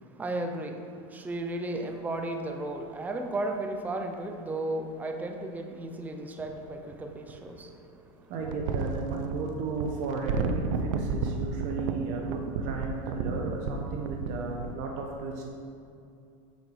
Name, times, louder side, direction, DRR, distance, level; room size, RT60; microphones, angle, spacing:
voice 1, 0.2-8.3, right 2 dB, 10° right, 4 dB, 0.6 m, -34 dB
sound 1, 4.1-4.2 6.4-7.6 8.4-14.7, right 4 dB, 75° right, 0.7 m, -32 dB
voice 2, 8.3-15.4, right 4 dB, 50° right, 0 dB, 1.0 m, -34 dB
9.2 x 4.9 x 4.8 m, 2.5 s
supercardioid pair, 145°, 17 cm